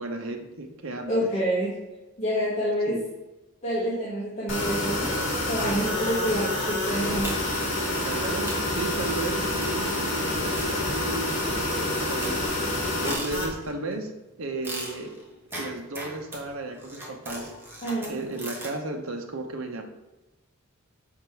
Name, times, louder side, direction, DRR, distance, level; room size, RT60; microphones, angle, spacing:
voice 1, 0.0-1.3 2.9-3.1 8.0-12.4 12.9-14.1 14.4-15.1 15.5-17.5 18.1-19.8, right 2 dB, 80° right, 3 dB, 0.9 m, -34 dB
voice 2, 1.1-1.7 2.2-3.0 3.6-7.4 17.8-18.2, equal, 35° left, -9 dB, 1.5 m, -27 dB
sound 1, 4.5-13.5, left 1 dB, 60° left, 1.7 m, -28 dB
sound 2, 7.2-7.7 8.1-8.2 8.5-8.8 9.6-9.9 10.6-11.3 11.8-13.8 14.6-18.8, right 1 dB, 10° right, 1.1 m, -39 dB
6.6 x 3.7 x 4.6 m, 1.0 s
head